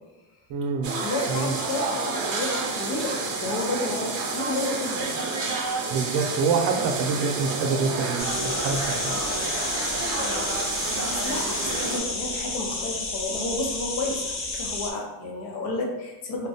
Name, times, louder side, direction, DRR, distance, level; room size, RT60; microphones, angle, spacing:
voice 1, 0.5-1.0 1.3-1.5 5.9-9.0, right 5 dB, 80° right, 3 dB, 0.5 m, -26 dB
sound 1, 0.8-12.0, right 3 dB, 35° right, 0.4 m, -29 dB
voice 2, 1.0-5.1 10.1-16.5, left 2 dB, 90° left, 0 dB, 0.8 m, -31 dB
sound 2, 8.2-14.9, left 3 dB, 30° left, 0.4 m, -31 dB
3.5 x 2.1 x 2.7 m, 1.1 s
cardioid pair, 160°, 44 cm